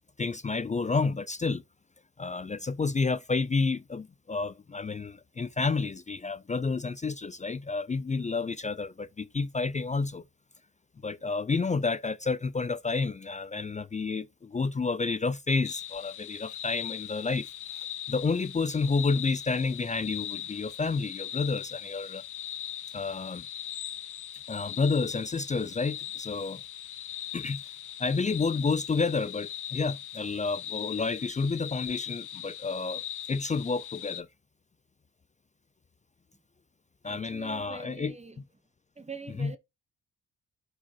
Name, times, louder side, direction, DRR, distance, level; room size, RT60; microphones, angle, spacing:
voice 1, 0.2-1.6 2.2-10.2 11.0-17.5 18.1-22.2 22.9-23.5 24.5-26.6 27.3-27.6 28.0-33.0 33.3-34.3 37.0-38.1 39.4-39.5, left 4 dB, 20° left, 0.4 m, -30 dB
sound 1, 15.6-34.2, left 12 dB, 60° left, 0.7 m, -40 dB
voice 2, 37.0-38.4 39.0-39.6, right 4 dB, 20° right, 1.1 m, -44 dB
11.5 x 4.7 x 2.9 m
cardioid pair, 75°, 35 cm